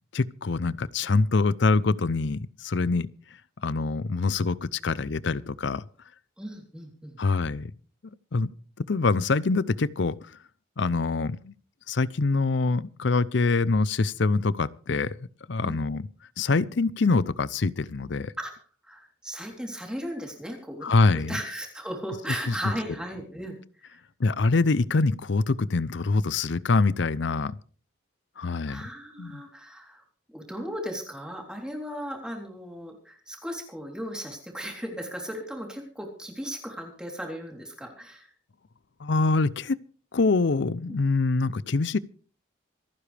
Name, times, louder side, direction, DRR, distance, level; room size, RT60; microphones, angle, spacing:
voice 1, 0.1-3.1 3.6-5.8 7.2-7.7 8.3-8.5 8.8-10.2 10.8-11.5 11.9-15.1 15.5-16.1 16.4-18.3 20.8-21.4 22.5-22.6 24.2-27.5 28.4-28.8 29.2-29.4 39.0-39.8 40.1-42.0, left 3 dB, 65° left, 0.6 m, -24 dB
voice 2, 6.4-7.2 15.6-15.8 18.4-18.5 18.9-24.0 28.6-30.0 30.3-38.3 40.9-41.0, equal, 5° right, 3.4 m, -36 dB
26.5 x 9.9 x 3.4 m
head